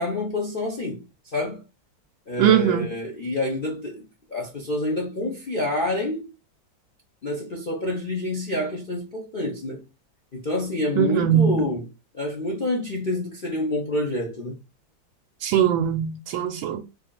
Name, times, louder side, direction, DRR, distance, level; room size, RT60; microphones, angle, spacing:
voice 1, 0.0-1.6 2.3-4.0 4.3-6.3 7.2-9.8 10.3-11.9 12.1-14.6, left 2 dB, 60° left, 0.5 m, -28 dB
voice 2, 2.4-2.9 11.0-11.7 15.4-16.8, right 9 dB, 85° right, 1.3 m, -21 dB
3.3 x 2.5 x 3.7 m
omnidirectional pair, 2.1 m